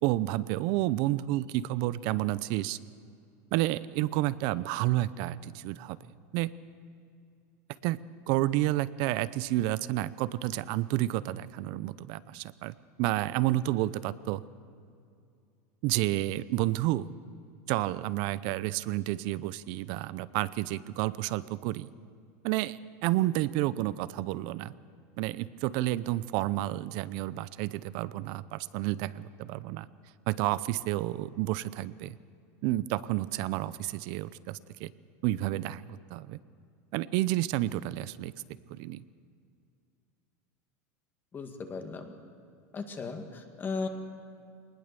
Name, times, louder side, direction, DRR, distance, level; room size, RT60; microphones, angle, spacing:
voice 1, 0.0-2.8 3.5-6.0 6.3-6.5 7.8-8.0 8.3-14.4 15.8-17.1 17.7-21.9 22.4-24.7 25.2-29.9 30.3-32.2 32.6-34.9 35.2-36.4 36.9-38.3 38.7-39.0, right 16 dB, 60° right, 18 dB, 0.7 m, -30 dB
voice 2, 41.3-42.1 42.7-43.9, left 4 dB, 25° left, 5 dB, 2.0 m, -36 dB
21.5 x 19.5 x 6.9 m, 2.4 s
supercardioid pair, 130°, 9 cm